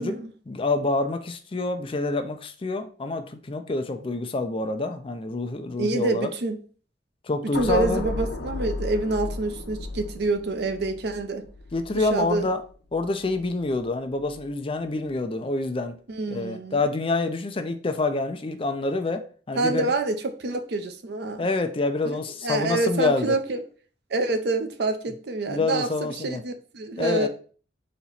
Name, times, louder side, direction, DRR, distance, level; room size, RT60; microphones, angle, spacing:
voice 1, 0.5-6.3 7.2-8.0 11.7-12.6 12.9-16.0 16.3-19.9 21.4-23.4 25.5-26.4 27.0-27.3, left 3 dB, 30° left, 0.4 m, -27 dB
voice 2, 5.8-6.6 7.5-11.4 11.9-12.5 16.1-16.8 19.6-21.5 22.0-22.2 22.4-23.6 24.1-27.3, right 2 dB, 60° right, 0.6 m, -27 dB
sound 1, 7.5-13.8 14.2-14.5, left 2 dB, 85° left, 0.6 m, -35 dB
4.2 x 2.9 x 4.0 m
head